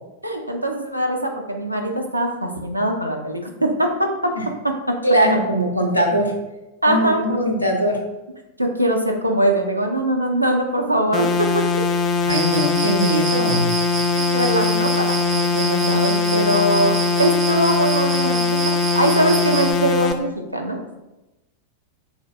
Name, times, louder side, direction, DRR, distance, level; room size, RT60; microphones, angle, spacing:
voice 1, 0.2-4.1 4.6-4.7 6.8-7.4 8.6-11.7 14.1-18.6 18.9-20.8, right 1 dB, 85° right, 2 dB, 0.6 m, -22 dB
voice 2, 5.0-6.3 6.9-8.0 12.3-13.7, right 1 dB, 90° left, 1 dB, 0.7 m, -20 dB
sound 1, 11.1-20.1, left 4 dB, 30° left, 0.4 m, -21 dB
Cricket, 12.3-19.7, right 6 dB, 35° right, 0.5 m, -29 dB
5.6 x 3.9 x 2.2 m, 1.0 s
figure-of-eight pair, 90°, 0 cm